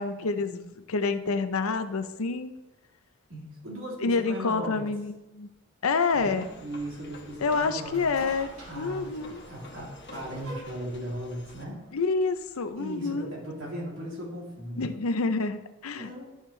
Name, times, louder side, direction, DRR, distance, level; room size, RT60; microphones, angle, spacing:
voice 1, 0.0-2.5 4.0-5.5 5.8-6.5 7.4-8.5 8.7-9.4 11.9-13.3 14.8-16.2, left 4 dB, 85° left, 10 dB, 0.6 m, -28 dB
voice 2, 3.3-4.9 6.1-8.1 8.7-11.8 12.8-14.9 15.9-16.2, equal, 65° right, -4 dB, 3.0 m, -38 dB
sound 1, 6.1-11.6, left 3 dB, 55° left, 1.1 m, -49 dB
sound 2, 7.4-12.7, right 1 dB, 90° right, 2.7 m, -47 dB
11.5 x 6.4 x 3.2 m, 1.0 s
head